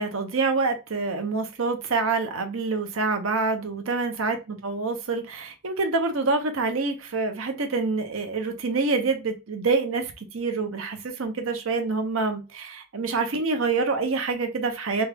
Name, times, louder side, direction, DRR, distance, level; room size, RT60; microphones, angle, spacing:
voice 1, 0.0-15.1, right 4 dB, 85° right, 0.8 m, -26 dB
3.2 x 2.4 x 3.3 m
head